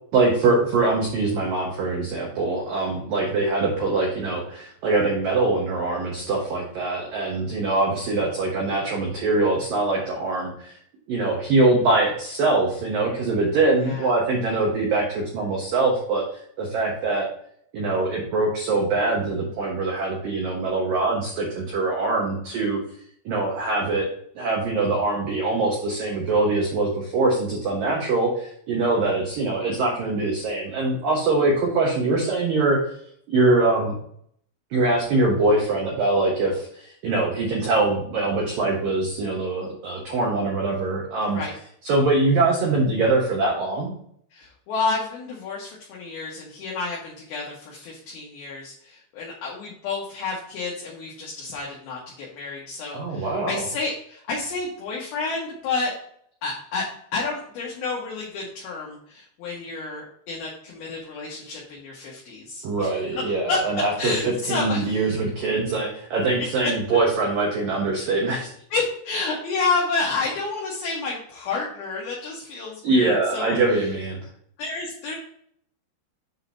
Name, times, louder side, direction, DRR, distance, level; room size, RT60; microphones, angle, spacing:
voice 1, 0.1-10.8 11.1-16.2 16.6-17.3 17.7-22.8 23.3-24.1 24.4-32.8 33.3-34.0 34.7-41.4 41.8-43.9 52.9-53.7 62.6-68.5 72.8-74.2, right 3 dB, 80° right, -1 dB, 2.0 m, -23 dB
voice 2, 44.3-55.9 56.4-56.9 57.1-62.9 63.2-63.6 64.0-65.0 68.0-68.1 68.7-73.8 74.6-75.2, left 4 dB, 65° left, -4 dB, 2.6 m, -30 dB
7.9 x 3.9 x 4.0 m, 0.66 s
omnidirectional pair, 5.8 m